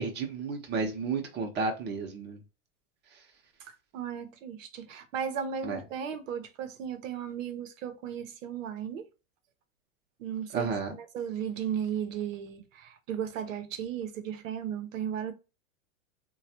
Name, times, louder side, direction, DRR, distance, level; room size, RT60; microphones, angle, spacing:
voice 1, 0.0-2.4 5.6-5.8 10.5-10.9, right 4 dB, 25° right, 0.8 m, -32 dB
voice 2, 3.6-9.1 10.2-10.7 11.0-15.3, right 8 dB, 70° right, 0.8 m, -35 dB
3.1 x 2.3 x 2.8 m
hypercardioid pair, 115°, 40 cm